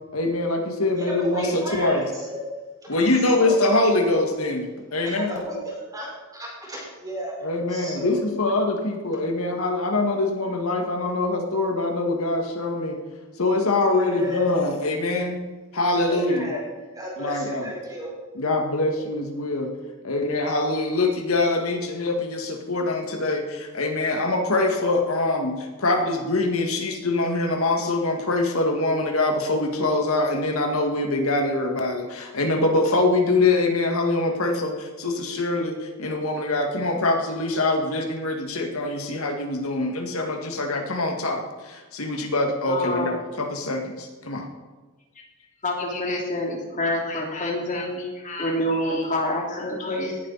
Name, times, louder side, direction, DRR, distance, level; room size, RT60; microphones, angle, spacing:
voice 1, 0.1-2.0 2.9-5.4 7.4-13.0 13.4-15.4 15.7-16.5 17.2-17.7 18.4-19.7 20.0-44.5, left 2 dB, 80° left, 3 dB, 2.0 m, -24 dB
voice 2, 1.0-2.4 3.3-3.6 5.0-8.2 14.0-14.4 16.1-16.6 16.9-18.1, equal, 20° right, -4 dB, 4.6 m, -33 dB
voice 3, 42.7-43.1 45.6-50.2, left 1 dB, 35° left, -1 dB, 3.0 m, -27 dB
18.5 x 11.5 x 4.2 m, 1.3 s
head